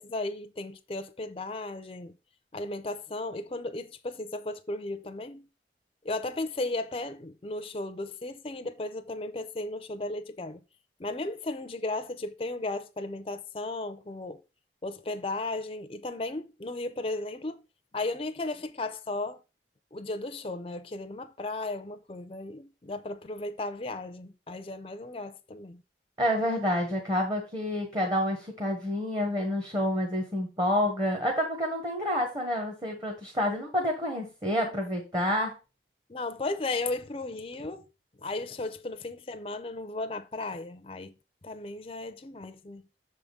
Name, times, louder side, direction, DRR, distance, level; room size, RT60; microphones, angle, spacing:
voice 1, 0.0-2.1 2.5-5.5 6.0-10.6 11.0-14.4 14.8-17.6 17.9-19.4 19.9-25.8 36.1-37.9 38.2-41.1 41.4-42.8, left 2 dB, 30° left, 0.5 m, -35 dB
voice 2, 26.2-35.5, left 1 dB, 25° right, 1.1 m, -28 dB
6.6 x 3.6 x 5.2 m
head